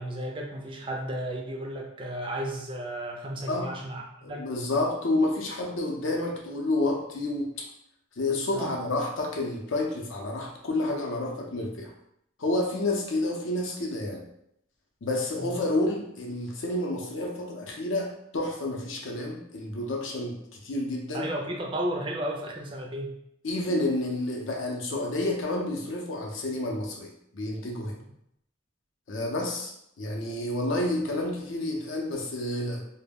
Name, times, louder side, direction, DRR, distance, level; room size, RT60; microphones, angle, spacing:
voice 1, 0.0-4.0 4.3-4.5 8.5-8.7 15.4-15.6 21.1-23.2, right 1 dB, 25° right, 1 dB, 0.3 m, -33 dB
voice 2, 4.2-7.6 8.2-11.9 12.4-14.3 15.0-21.3 23.4-28.0 29.1-29.7 30.0-32.9, left 2 dB, 80° left, 0 dB, 0.6 m, -29 dB
2.2 x 2.1 x 3.4 m, 0.75 s
head